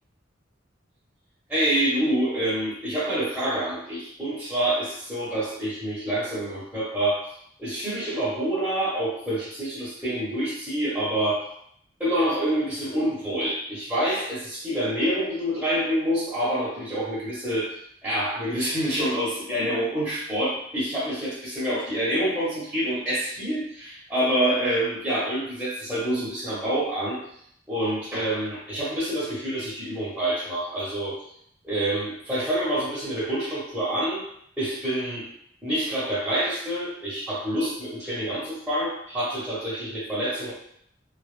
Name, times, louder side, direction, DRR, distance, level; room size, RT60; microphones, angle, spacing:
voice 1, 1.5-7.3 7.6-11.5 12.0-27.2 27.7-31.2 31.6-34.2 34.6-35.3 35.6-40.5, right 1 dB, 5° right, -10 dB, 0.7 m, -27 dB
2.1 x 2.0 x 3.1 m, 0.68 s
head